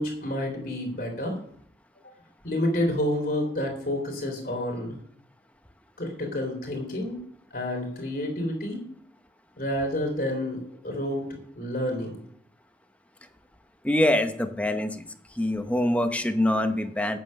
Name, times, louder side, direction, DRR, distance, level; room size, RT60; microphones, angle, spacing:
voice 1, 0.0-1.4 2.0-2.1 2.4-5.0 6.0-7.2 7.5-8.8 9.6-11.3 11.5-12.2, left 1 dB, 55° left, 2 dB, 3.3 m, -29 dB
voice 2, 13.8-15.0 15.4-17.2, left 1 dB, 10° left, 7 dB, 0.8 m, -24 dB
9.2 x 7.6 x 6.5 m, 0.62 s
head